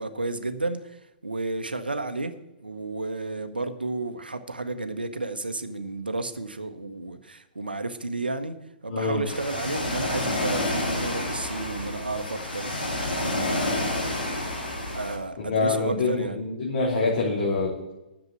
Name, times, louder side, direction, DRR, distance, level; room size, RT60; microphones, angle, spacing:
voice 1, 0.0-8.6 8.8-14.2 14.9-16.5, right 2 dB, 80° right, 9 dB, 1.0 m, -32 dB
voice 2, 8.9-9.2 15.4-17.9, left 3 dB, 60° left, -5 dB, 3.2 m, -25 dB
Ocean, 9.3-15.1, left 1 dB, 85° left, 3.2 m, -29 dB
10.5 x 7.4 x 7.4 m, 0.98 s
figure-of-eight pair, 115°, 5 cm